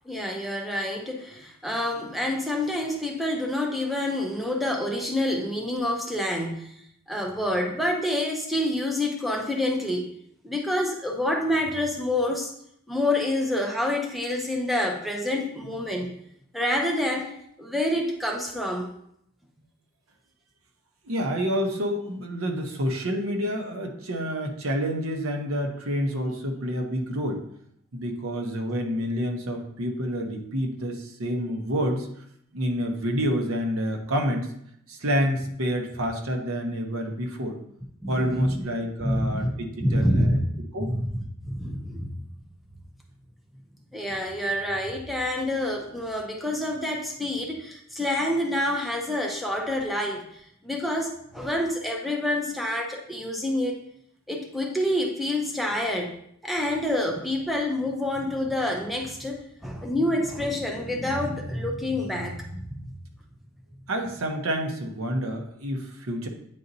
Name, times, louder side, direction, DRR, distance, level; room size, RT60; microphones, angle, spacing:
voice 1, 0.1-6.7 7.1-10.1 10.4-12.5 12.9-16.1 16.5-17.3 17.6-18.9 38.0-38.6 39.0-39.5 39.8-40.4 40.8-41.1 41.4-42.2 43.9-53.8 54.3-56.1 56.4-62.8, left 1 dB, ahead, 1 dB, 0.6 m, -27 dB
voice 2, 21.0-27.4 27.9-32.1 32.5-34.5 34.9-37.6 38.1-40.4 40.7-40.9 63.9-66.3, equal, 75° right, 3 dB, 0.9 m, -28 dB
9.2 x 4.0 x 2.7 m, 0.71 s
head